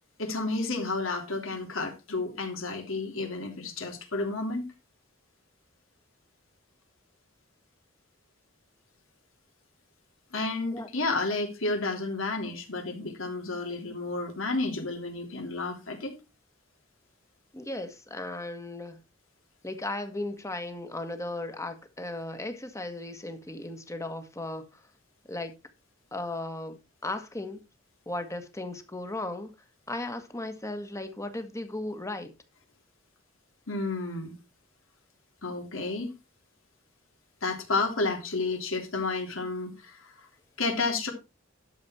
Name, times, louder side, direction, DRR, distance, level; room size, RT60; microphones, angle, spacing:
voice 1, 0.2-4.6 10.3-16.1 33.7-34.4 35.4-36.1 37.4-40.1 40.6-41.1, left 3 dB, 85° left, 3.2 m, -31 dB
voice 2, 17.5-19.0 19.6-24.7 25.3-25.5 26.1-27.6 28.1-29.5 29.9-32.3, left 2 dB, 15° left, 1.6 m, -36 dB
11.5 x 7.1 x 4.4 m
head